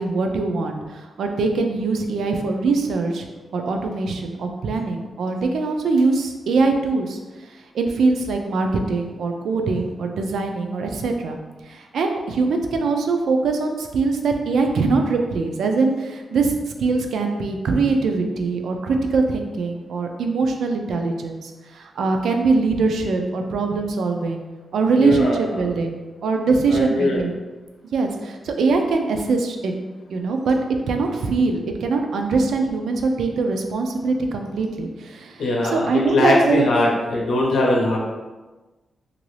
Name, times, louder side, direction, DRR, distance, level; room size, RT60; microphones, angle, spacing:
voice 1, 0.0-3.3 3.5-11.4 11.6-24.4 24.7-27.4 27.9-29.7 30.1-30.6 30.9-36.7, right 3 dB, 80° right, 4 dB, 0.4 m, -22 dB
voice 2, 24.9-25.6 26.7-27.2 35.4-38.0, left 2 dB, 75° left, -3 dB, 0.8 m, -21 dB
3.0 x 2.5 x 3.1 m, 1.2 s
wide cardioid pair, 125°, 0 cm